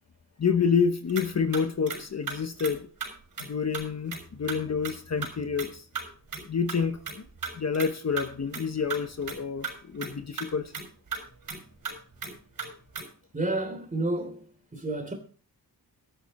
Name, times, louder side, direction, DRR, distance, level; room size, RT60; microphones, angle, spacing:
voice 1, 0.4-2.9 3.4-5.8 6.5-7.0 7.5-10.7, left 6 dB, 45° left, 1.1 m, -28 dB
sound 1, 1.1-1.3 1.5-2.0 2.3-2.7 3.0-3.1 3.4-3.5 3.7-3.8 4.1-4.6 4.8-4.9 5.2-5.3 5.6-5.7 5.9-6.1 6.3-6.4 6.7-6.8 7.1-7.9 8.2-8.3 8.5-8.6 8.9-9.7 10.0-10.1 10.4-10.5 10.7-10.8 11.1-11.6 11.8-11.9 12.2-13.0, right 5 dB, 60° right, 6.5 m, -35 dB
voice 2, 13.3-14.4 14.7-15.1, right 2 dB, 20° right, 3.2 m, -30 dB
13.5 x 11.5 x 4.3 m
wide cardioid pair, 170°, 38 cm